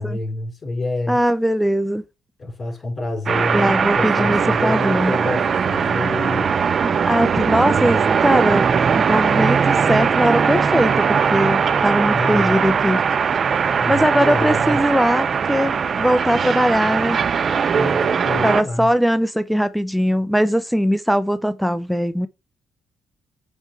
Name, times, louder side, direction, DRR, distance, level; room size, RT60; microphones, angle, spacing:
voice 1, 0.0-1.2 2.4-6.5 12.1-12.6 13.7-14.8 17.7-18.9, left 2 dB, 40° left, 4.6 m, -27 dB
voice 2, 1.1-2.0 3.5-5.2 6.8-13.0 13.9-17.2 18.4-22.3, equal, ahead, 0.8 m, -20 dB
sound 1, 3.3-18.6, right 6 dB, 50° right, 0.6 m, -19 dB
8.0 x 3.4 x 4.8 m
supercardioid pair, 65°, 0 cm